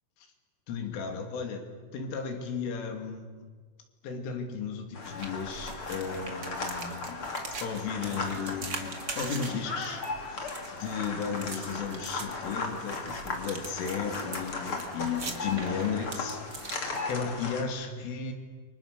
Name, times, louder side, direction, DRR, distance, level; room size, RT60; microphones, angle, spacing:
voice 1, 0.7-1.7 1.9-3.5 4.0-7.3 7.6-16.8 17.1-18.3, left 6 dB, 80° left, 4 dB, 5.2 m, -35 dB
sound 1, 4.9-17.6, left 3 dB, 35° left, 2.8 m, -37 dB
sound 2, 5.0-17.5, right 4 dB, 65° right, 0.9 m, -43 dB
29.0 x 24.5 x 6.8 m, 1.5 s
omnidirectional pair, 5.6 m